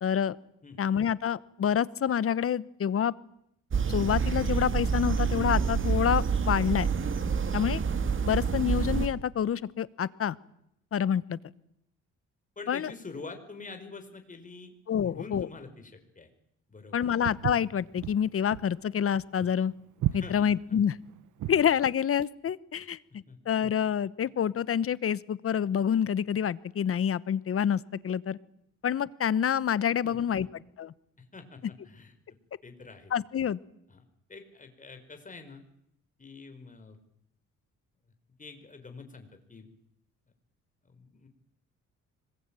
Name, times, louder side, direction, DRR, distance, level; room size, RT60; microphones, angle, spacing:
voice 1, 0.0-0.4 0.8-3.1 3.9-6.9 7.5-7.8 8.2-10.4 10.9-11.4 12.7-12.9 14.9-15.5 16.9-19.7 20.1-21.0 21.5-23.0 23.5-28.4 28.8-30.5 30.8-30.9 33.1-33.6, left 8 dB, 50° left, 19 dB, 1.1 m, -27 dB
sound 1, 3.7-9.1, right 6 dB, 40° right, 2.1 m, -27 dB
voice 2, 12.6-16.3 16.7-17.2 20.1-20.5 22.8-22.9 23.3-23.4 30.0-30.5 31.2-32.1 32.6-33.1 33.9-34.0 34.3-35.6 36.2-37.0 38.4-39.7 40.8-41.3, left 4 dB, 25° left, 6 dB, 5.4 m, -46 dB
Walk footsteps, 17.2-21.7, right 13 dB, 80° right, 1.4 m, -34 dB
25.5 x 21.5 x 9.1 m, 0.76 s
cardioid pair, 90°, 30 cm